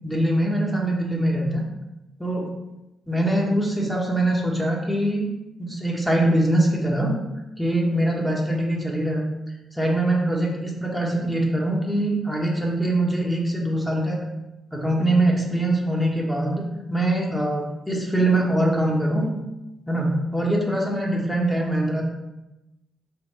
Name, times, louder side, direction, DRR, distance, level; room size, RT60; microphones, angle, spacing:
voice 1, 0.0-1.7 2.2-2.5 3.1-5.3 5.6-7.2 7.6-9.3 9.8-14.2 14.7-19.3 19.9-22.0, right 1 dB, 5° left, -2 dB, 0.9 m, -23 dB
3.6 x 2.2 x 4.1 m, 0.97 s
hypercardioid pair, 40°, 0 cm